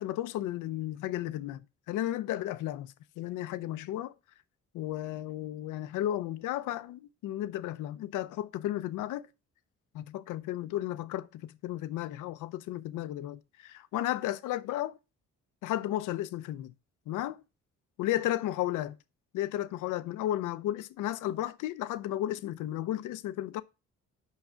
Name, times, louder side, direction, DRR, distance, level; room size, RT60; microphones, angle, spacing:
voice 1, 0.0-1.6 1.9-4.1 4.7-9.3 9.9-14.9 15.6-16.7 17.1-17.4 18.0-18.9 19.3-23.6, left 13 dB, 90° left, 0.7 m, -33 dB
8.3 x 5.9 x 5.6 m
cardioid pair, 90°, 30 cm